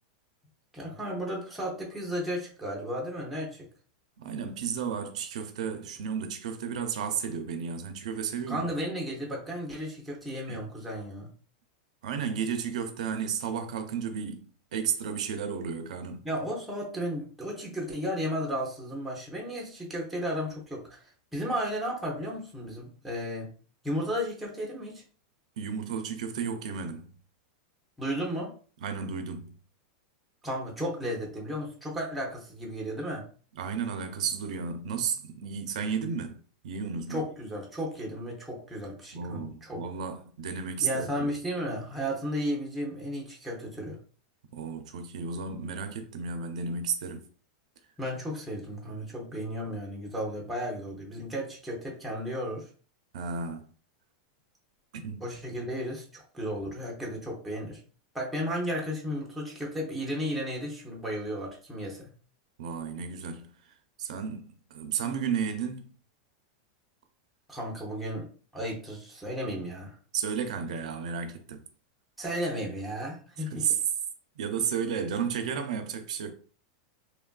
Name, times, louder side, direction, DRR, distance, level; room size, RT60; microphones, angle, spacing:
voice 1, 0.7-3.7 8.5-11.3 16.2-23.5 23.8-25.0 28.0-28.6 30.4-33.2 37.1-39.8 40.8-44.0 48.0-52.7 55.2-57.8 58.1-62.1 67.5-68.3 68.5-69.9 72.2-73.8, equal, ahead, 0.6 m, -34 dB
voice 2, 4.2-8.7 10.5-10.6 12.0-16.2 25.6-27.1 28.8-29.5 33.6-37.3 39.1-41.1 44.5-47.3 53.1-53.7 54.9-55.3 62.6-65.9 70.1-71.6 73.4-73.8 74.4-76.3, right 6 dB, 70° right, 0.5 m, -33 dB
3.1 x 2.3 x 2.2 m
supercardioid pair, 170°, 4 cm